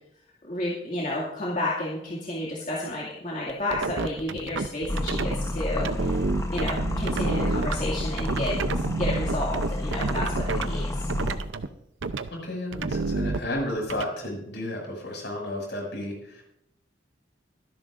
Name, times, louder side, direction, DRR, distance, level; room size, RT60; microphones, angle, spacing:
voice 1, 0.4-6.2 6.5-10.9, left 1 dB, 40° left, -5 dB, 2.3 m, -31 dB
sound 1, 3.5-5.4 5.8-10.7 11.1-11.7 12.0-12.3 12.7-14.0, right 3 dB, 85° right, 0.7 m, -29 dB
sound 2, 4.9-11.4, left 1 dB, 15° left, 1.0 m, -30 dB
voice 2, 12.3-16.4, left 1 dB, 65° left, -1 dB, 6.4 m, -32 dB
25.0 x 11.0 x 2.6 m, 0.79 s
head